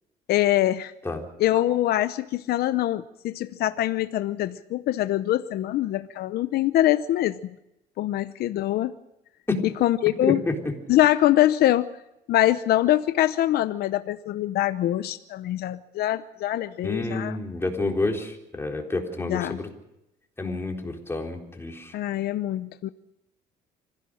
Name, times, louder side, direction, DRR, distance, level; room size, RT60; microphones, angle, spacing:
voice 1, 0.3-0.9 1.4-7.4 8.0-8.9 9.8-10.4 10.9-11.9 12.3-17.3 19.3-19.6 21.9-22.9, left 14 dB, 70° left, 12 dB, 0.8 m, -23 dB
voice 2, 10.2-10.6 16.8-19.7 20.4-21.9, left 2 dB, 15° left, 1 dB, 4.0 m, -29 dB
25.5 x 16.0 x 6.4 m, 0.88 s
cardioid pair, 110°, 17 cm